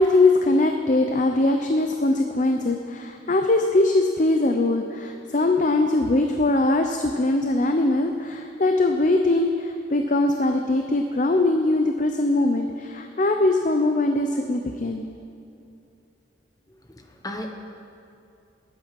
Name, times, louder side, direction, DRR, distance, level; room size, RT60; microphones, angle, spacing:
voice 1, 0.0-15.0, left 2 dB, 40° left, 5 dB, 0.6 m, -21 dB
voice 2, 16.7-17.5, left 1 dB, 20° left, 3 dB, 1.2 m, -36 dB
20.5 x 8.4 x 5.9 m, 2.6 s
head